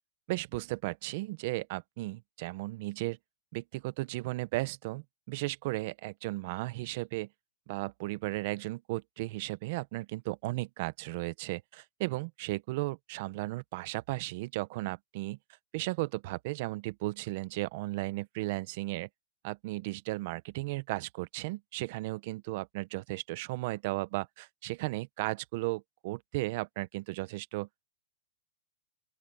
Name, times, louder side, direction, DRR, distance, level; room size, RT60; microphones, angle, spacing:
voice 1, 0.3-3.2 3.5-7.3 7.7-15.4 15.7-19.1 19.4-27.7, right 20 dB, 50° right, 1.0 m, -35 dB
open air
hypercardioid pair, 140°, 0 cm